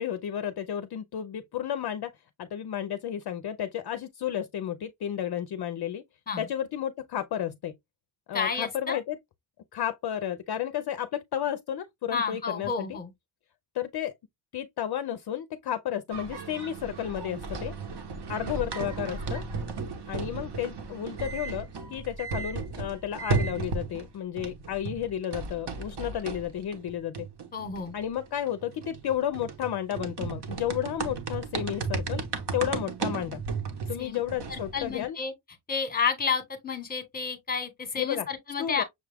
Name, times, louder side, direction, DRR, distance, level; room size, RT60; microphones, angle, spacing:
voice 1, 0.0-2.1 2.4-6.0 6.4-7.7 8.3-9.2 9.7-13.0 13.7-14.1 14.5-17.7 18.3-19.4 20.1-27.3 27.9-32.2 32.5-33.4 33.9-35.2 38.0-38.3 38.6-38.8, left 10 dB, 55° left, 0.5 m, -32 dB
voice 2, 8.3-9.0 12.1-13.1 27.5-27.9 34.0-34.2 34.5-35.3 35.7-38.8, left 5 dB, 20° left, 1.0 m, -30 dB
sound 1, 16.1-24.1 24.4-34.9, right 4 dB, 55° right, 1.0 m, -35 dB
6.4 x 2.3 x 3.3 m
wide cardioid pair, 160°, 47 cm